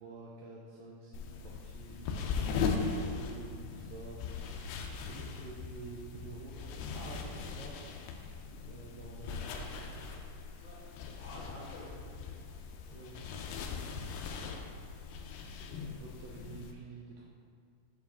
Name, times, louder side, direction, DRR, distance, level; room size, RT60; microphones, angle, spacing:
voice 1, 0.0-2.2 2.8-7.8 8.7-9.7 12.9-13.3 15.4-17.3, right 3 dB, 85° right, -3 dB, 2.0 m, -49 dB
sound 1, 1.1-16.7, left 5 dB, 90° left, 2.6 m, -39 dB
voice 2, 11.1-12.4 12.7-13.7, left 1 dB, 60° left, -11 dB, 2.4 m, -51 dB
8.8 x 4.7 x 3.5 m, 2.2 s
omnidirectional pair, 4.5 m